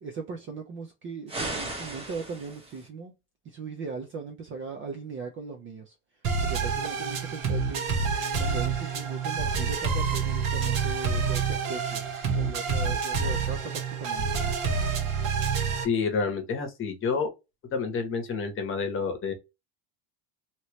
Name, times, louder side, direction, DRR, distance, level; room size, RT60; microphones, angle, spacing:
voice 1, 0.0-3.1 3.5-6.0 6.4-7.8 8.4-12.0 12.3-14.3, right 4 dB, 30° right, 0.3 m, -38 dB
sound 1, 1.3-2.9, right 2 dB, 15° right, 0.9 m, -36 dB
sound 2, 6.2-15.8, right 5 dB, 55° right, 1.2 m, -28 dB
voice 2, 15.8-17.3 17.7-19.3, left 5 dB, 30° left, 0.9 m, -28 dB
3.0 x 2.8 x 3.0 m
cardioid pair, 155°, 44 cm